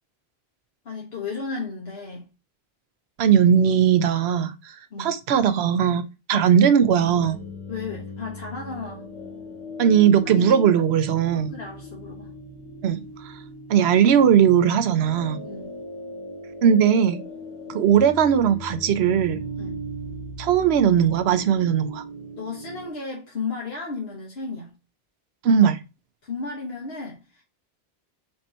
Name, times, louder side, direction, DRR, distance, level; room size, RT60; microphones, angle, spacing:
voice 1, 0.8-2.3 4.9-5.1 6.3-6.5 7.7-9.1 10.3-10.6 11.3-12.3 15.4-15.7 19.6-19.8 22.4-24.7 26.2-27.4, left 4 dB, 80° left, 1.4 m, -34 dB
voice 2, 3.2-6.0 6.3-7.4 9.8-11.5 12.8-13.4 13.7-15.4 16.6-17.2 17.7-19.4 20.4-22.0 25.4-25.8, right 8 dB, 90° right, 0.9 m, -19 dB
sound 1, 6.9-22.9, equal, 45° left, 1.6 m, -38 dB
4.4 x 2.7 x 4.2 m
omnidirectional pair, 1.0 m